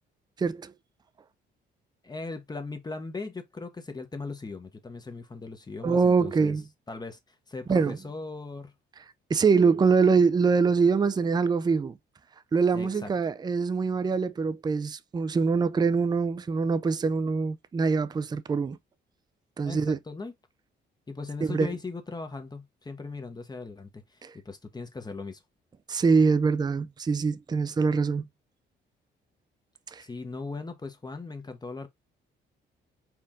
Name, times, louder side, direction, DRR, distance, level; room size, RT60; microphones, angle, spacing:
voice 1, 0.4-0.7 5.8-6.6 7.7-8.0 9.3-12.0 12.5-18.8 19.6-20.0 21.5-21.7 24.2-24.3 25.9-28.3 29.9-30.0, right 5 dB, 20° right, 0.4 m, -24 dB
voice 2, 2.0-6.6 6.9-7.2 7.5-8.7 12.7-13.1 19.6-20.3 21.1-25.4 30.0-31.9, left 3 dB, 20° left, 0.9 m, -38 dB
4.5 x 2.6 x 3.6 m
cardioid pair, 90°, 20 cm